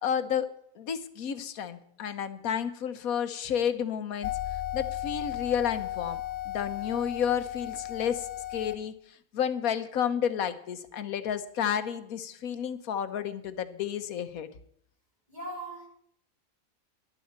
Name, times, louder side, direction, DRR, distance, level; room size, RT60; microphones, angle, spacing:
voice 1, 0.0-0.5 0.8-6.2 6.5-9.0 9.3-14.5, left 8 dB, 85° left, 12 dB, 1.4 m, -31 dB
sound 1, 4.2-8.8, left 14 dB, 60° left, 0.9 m, -35 dB
voice 2, 15.3-15.9, right 1 dB, 30° right, -4 dB, 6.4 m, -39 dB
11.5 x 7.2 x 9.4 m, 0.68 s
omnidirectional pair, 1.5 m